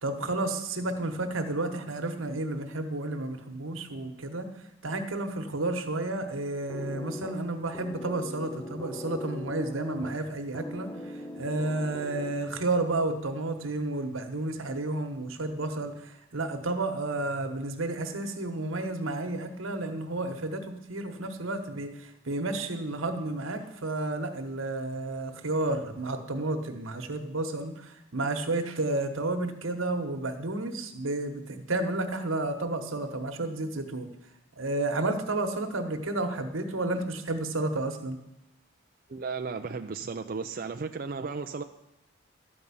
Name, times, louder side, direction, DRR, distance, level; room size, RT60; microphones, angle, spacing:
voice 1, 0.0-4.5 4.8-10.9 11.4-34.1 34.6-38.2, right 2 dB, 85° right, 6 dB, 1.3 m, -31 dB
sound 1, 6.7-12.7, left 1 dB, 15° left, 0.5 m, -41 dB
voice 2, 39.1-41.6, right 4 dB, 45° right, 6 dB, 0.4 m, -34 dB
12.0 x 5.4 x 8.5 m, 0.85 s
head